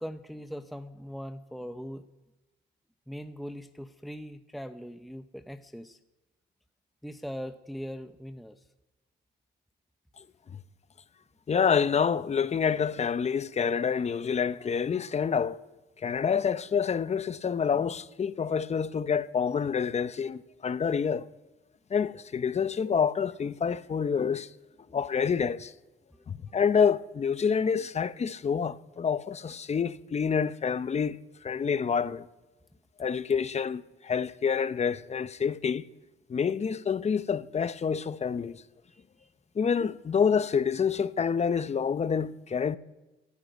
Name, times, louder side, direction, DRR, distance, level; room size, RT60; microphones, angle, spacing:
voice 1, 0.0-2.1 3.1-6.0 7.0-8.7 26.1-26.3 27.7-27.9 38.9-39.3, equal, ahead, 0.7 m, -41 dB
voice 2, 11.5-15.6 16.0-21.3 21.9-24.5 24.9-25.7 26.3-31.2 31.4-32.3 33.0-35.9 36.3-38.6 39.6-42.8, left 6 dB, 35° left, 0.7 m, -27 dB
13.0 x 12.0 x 9.2 m
cardioid pair, 90°, 20 cm